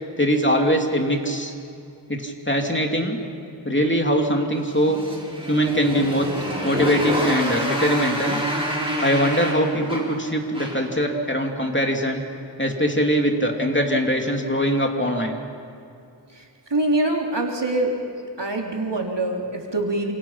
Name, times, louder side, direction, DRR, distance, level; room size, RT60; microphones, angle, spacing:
voice 1, 0.2-1.5 2.1-3.2 3.6-5.0 5.5-6.3 6.6-8.4 9.0-12.2 12.6-15.4, equal, 25° left, 2 dB, 2.9 m, -22 dB
Motorcycle, 4.6-11.0, right 1 dB, 10° right, 7.2 m, -27 dB
voice 2, 16.7-18.0 18.4-20.1, right 2 dB, 65° right, 0 dB, 3.6 m, -24 dB
28.0 x 27.5 x 5.9 m, 2.6 s
wide cardioid pair, 50°, 45 cm